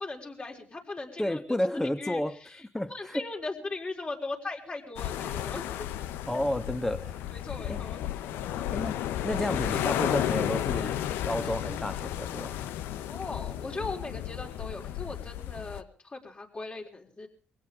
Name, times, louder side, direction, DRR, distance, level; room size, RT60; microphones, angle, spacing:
voice 1, 0.0-2.2 2.9-5.9 6.3-6.4 7.3-8.0 12.9-17.3, left 3 dB, 35° left, 4.4 m, -39 dB
voice 2, 1.2-2.4 2.7-3.3 6.3-7.1 7.7-7.8 8.7-11.0 11.2-12.5, left 1 dB, 10° left, 1.4 m, -31 dB
sound 1, 5.0-15.8, left 11 dB, 85° left, 0.7 m, -33 dB
22.0 x 17.0 x 3.6 m
supercardioid pair, 65°, 4 cm